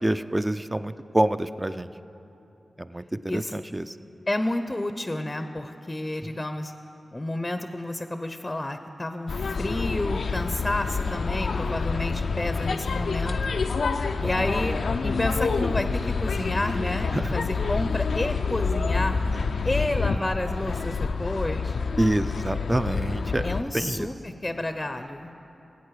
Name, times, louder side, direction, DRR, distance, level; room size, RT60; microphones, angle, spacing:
voice 1, 0.0-1.9 2.8-4.0 11.1-11.2 14.2-14.3 17.1-17.3 19.3-19.7 22.0-23.4 23.7-24.1, right 1 dB, 20° right, 11 dB, 0.4 m, -27 dB
voice 2, 3.3-3.6 4.3-6.7 7.1-13.4 14.2-19.2 19.6-21.8 23.4-25.3, left 1 dB, 25° left, 8 dB, 0.6 m, -30 dB
sound 1, 9.3-23.6, left 4 dB, 80° left, 0.4 m, -27 dB
17.5 x 8.3 x 4.7 m, 2.9 s
cardioid pair, 40°, 0 cm